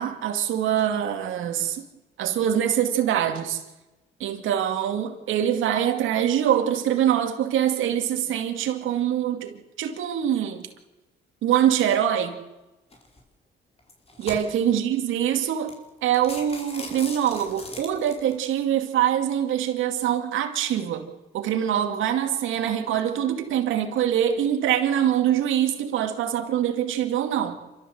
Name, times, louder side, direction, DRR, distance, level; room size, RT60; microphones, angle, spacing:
voice 1, 0.0-1.8 2.2-3.6 4.2-10.7 11.4-12.4 14.2-21.1 21.3-27.6, right 10 dB, 80° right, 2.4 m, -24 dB
sound 1, 12.9-13.2 13.8-14.8 15.3-15.4 15.7-15.8 16.1-18.3, left 2 dB, 30° left, 4.8 m, -39 dB
28.0 x 13.5 x 7.9 m
cardioid pair, 90°, 20 cm